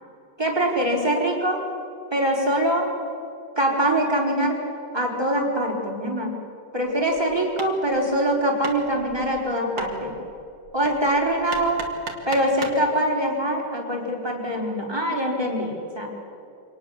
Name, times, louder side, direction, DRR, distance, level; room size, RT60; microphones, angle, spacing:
voice 1, 0.4-1.6 2.1-2.9 3.6-4.6 4.9-6.3 6.7-10.1 10.7-11.8 12.3-16.1, right 1 dB, 10° right, -1 dB, 4.1 m, -23 dB
Hammer, 6.8-12.9, right 4 dB, 55° right, 2.8 m, -39 dB
26.0 x 19.5 x 7.1 m, 2.8 s
omnidirectional pair, 2.4 m